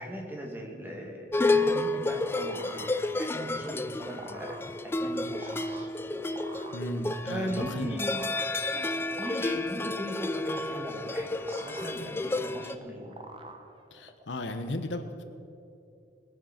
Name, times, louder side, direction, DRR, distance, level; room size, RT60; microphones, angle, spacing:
voice 1, 0.0-4.5 4.8-5.9 7.2-13.2, equal, 10° right, 0 dB, 1.7 m, -39 dB
sound 1, 1.3-12.7, left 2 dB, 15° left, 0.3 m, -31 dB
sound 2, 1.9-14.2, right 2 dB, 30° right, 1.0 m, -48 dB
voice 2, 6.7-7.9 13.9-15.2, left 1 dB, 90° left, 8 dB, 1.0 m, -35 dB
20.0 x 7.7 x 5.8 m, 2.6 s
head